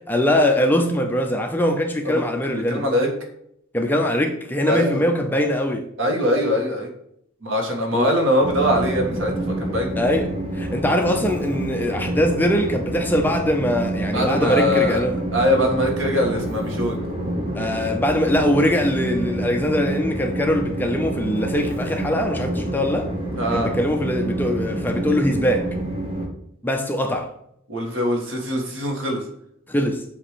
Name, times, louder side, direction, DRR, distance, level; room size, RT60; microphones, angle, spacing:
voice 1, 0.1-2.8 3.7-5.9 7.9-8.1 10.0-15.2 17.5-23.1 23.5-25.7 26.6-27.3 29.7-30.0, left 1 dB, 10° left, 0.5 m, -22 dB
voice 2, 2.5-3.1 4.7-5.0 6.0-6.9 7.4-9.3 9.6-9.9 14.1-15.0 15.3-17.0 23.4-23.7 27.7-29.2, left 1 dB, 70° right, 1.6 m, -22 dB
Train, 8.4-26.3, right 1 dB, 30° right, 1.1 m, -28 dB
7.6 x 2.9 x 4.9 m
head